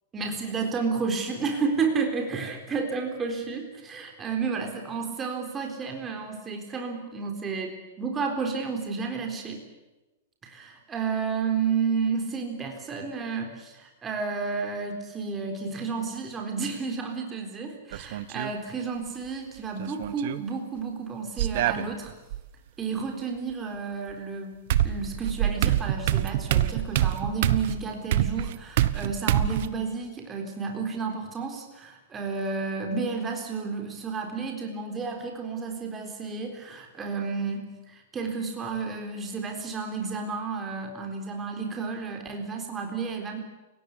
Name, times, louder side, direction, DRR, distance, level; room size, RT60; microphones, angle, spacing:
voice 1, 0.1-9.6 10.4-22.1 22.8-24.6 24.8-43.4, right 5 dB, 15° right, 3 dB, 3.9 m, -31 dB
sound 1, 17.9-18.5 19.8-20.4 21.4-22.4 24.1-24.2 24.7-29.7, right 12 dB, 55° right, 1.4 m, -26 dB
30.0 x 17.5 x 10.0 m, 1.1 s
supercardioid pair, 160°, 0 cm